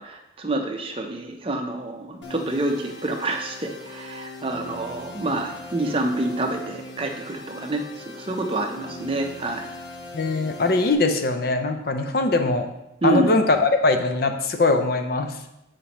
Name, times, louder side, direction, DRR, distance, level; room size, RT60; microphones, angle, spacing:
voice 1, 0.0-9.7 13.0-13.3, right 2 dB, 30° right, 3 dB, 0.6 m, -27 dB
sound 1, 2.2-10.9, left 2 dB, 65° left, 1.1 m, -40 dB
voice 2, 10.1-12.7 13.0-15.3, left 3 dB, 50° left, 6 dB, 0.6 m, -21 dB
8.3 x 5.1 x 3.0 m, 0.90 s
head